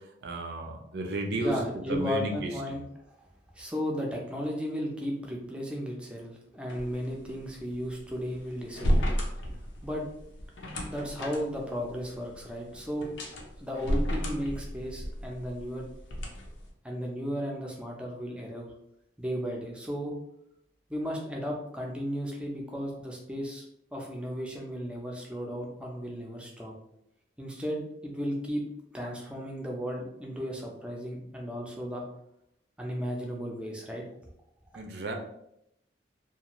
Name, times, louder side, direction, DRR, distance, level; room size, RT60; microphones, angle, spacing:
voice 1, 0.0-1.6 1.9-2.8 34.7-35.1, right 2 dB, 60° right, 3 dB, 0.4 m, -33 dB
voice 2, 1.3-2.8 3.2-3.3 3.5-9.4 9.8-10.0 10.9-13.1 13.6-15.8 16.8-18.7 19.2-20.1 20.9-23.6 23.9-26.7 27.4-28.6 28.9-32.0 32.8-34.0 34.7-34.8, equal, 5° right, -1 dB, 0.4 m, -35 dB
sound 1, 6.7-16.7, equal, 85° left, 0.6 m, -33 dB
2.4 x 2.4 x 2.9 m, 0.78 s
head